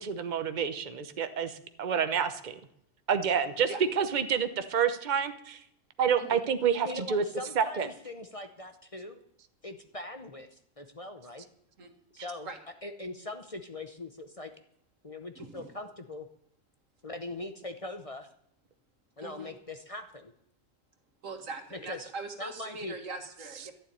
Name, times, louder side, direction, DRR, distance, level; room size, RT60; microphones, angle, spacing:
voice 1, 0.0-2.5 3.1-3.7 4.0-5.6 6.0-7.2 7.6-7.9, right 7 dB, 40° right, 10 dB, 1.0 m, -28 dB
voice 2, 6.8-9.2 9.6-11.4 12.1-12.5 12.8-14.5 15.0-16.3 17.0-18.3 19.2-20.3 21.7-22.0 22.4-22.9, left 2 dB, 30° left, 7 dB, 0.8 m, -41 dB
voice 3, 15.4-15.7 19.2-19.5 21.2-23.7, right 3 dB, 85° right, 5 dB, 2.1 m, -41 dB
12.0 x 7.3 x 9.8 m, 0.73 s
omnidirectional pair, 1.3 m